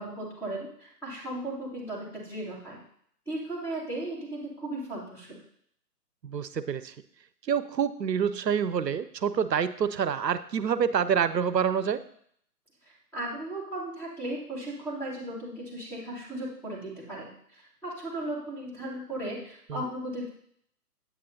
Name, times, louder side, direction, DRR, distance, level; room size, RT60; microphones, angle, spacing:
voice 1, 0.0-2.8 3.3-5.3 13.1-20.3, right 1 dB, 5° left, -6 dB, 1.8 m, -36 dB
voice 2, 6.2-6.9 7.5-12.0 19.7-19.8, right 7 dB, 85° right, 14 dB, 0.7 m, -27 dB
8.4 x 7.6 x 2.8 m, 0.65 s
figure-of-eight pair, 140°, 49 cm